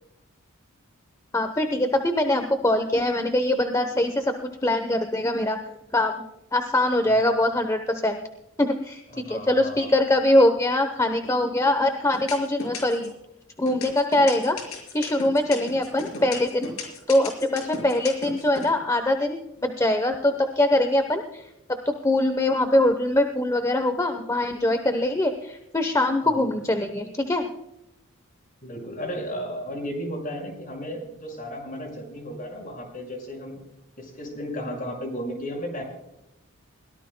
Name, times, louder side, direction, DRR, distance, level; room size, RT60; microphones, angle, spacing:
voice 1, 1.3-5.6 5.9-6.2 6.5-8.2 8.6-13.1 13.6-21.5 21.8-27.5, left 1 dB, 15° left, 7 dB, 0.9 m, -23 dB
voice 2, 7.1-7.5 9.1-9.9 26.2-26.4 28.6-33.6 34.0-35.8, equal, 40° left, 2 dB, 5.8 m, -34 dB
sound 1, 11.2-11.7 12.1-13.2 13.7-18.7, left 4 dB, 85° left, 5.4 m, -35 dB
22.0 x 17.5 x 2.2 m, 0.87 s
head